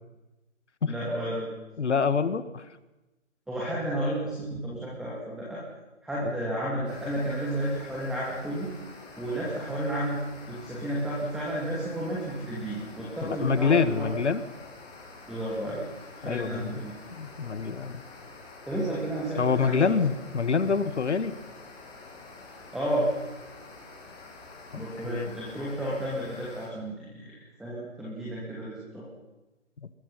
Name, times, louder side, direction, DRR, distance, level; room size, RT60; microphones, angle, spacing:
voice 1, 0.9-1.5 3.5-5.6 6.0-8.7 9.2-10.2 10.5-14.1 15.3-15.8 16.2-16.9 18.7-20.0 22.7-23.1 24.7-29.1, right 1 dB, ahead, -6 dB, 2.7 m, -32 dB
voice 2, 1.8-2.6 13.2-14.4 16.2-16.8 17.2-18.0 19.4-21.3 24.7-25.3, left 5 dB, 65° left, 13 dB, 1.8 m, -26 dB
sound 1, 6.8-26.7, left 3 dB, 15° left, 7.3 m, -47 dB
24.0 x 21.5 x 5.8 m, 1.0 s
figure-of-eight pair, 150°, 38 cm